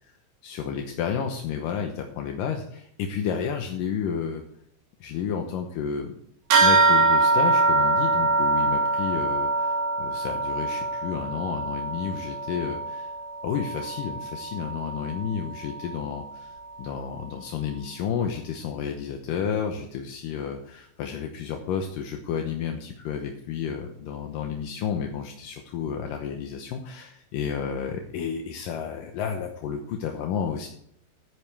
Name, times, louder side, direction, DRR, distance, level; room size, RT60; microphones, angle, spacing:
voice 1, 0.4-4.4 5.0-6.1 6.6-13.1 13.4-30.7, left 7 dB, 75° left, 3 dB, 2.1 m, -31 dB
sound 1, 6.5-16.3, right 3 dB, 90° right, 5.4 m, -24 dB
13.0 x 9.7 x 3.4 m, 0.68 s
omnidirectional pair, 5.0 m